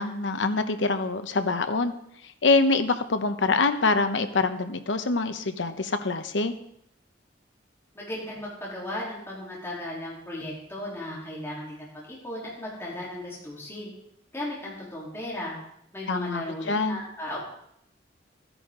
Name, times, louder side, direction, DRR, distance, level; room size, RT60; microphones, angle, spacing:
voice 1, 0.0-1.9 2.4-6.5 16.1-16.4 16.7-17.0, left 3 dB, 75° left, 9 dB, 0.9 m, -25 dB
voice 2, 7.9-13.9 14.3-15.6 15.9-17.4, left 1 dB, 15° left, -6 dB, 3.3 m, -36 dB
14.0 x 10.0 x 3.8 m, 0.72 s
head